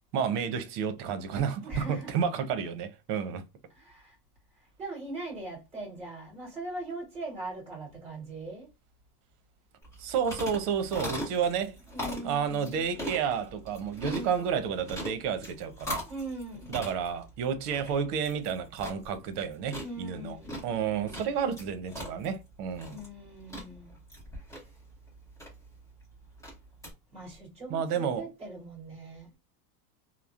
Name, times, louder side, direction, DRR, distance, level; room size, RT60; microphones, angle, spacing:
voice 1, 0.1-3.4 10.0-11.8 12.2-16.0 16.7-20.4 20.6-23.0 27.7-28.3, right 7 dB, 70° right, 0.8 m, -31 dB
voice 2, 1.6-2.1 3.7-4.1 4.8-8.7 11.9-12.8 13.9-14.3 16.0-16.8 19.7-21.4 22.9-24.0 27.1-29.3, right 2 dB, 15° right, 1.7 m, -41 dB
sound 1, 9.8-26.9, equal, 5° left, 0.8 m, -41 dB
3.0 x 2.0 x 2.3 m
cardioid pair, 175°, 48 cm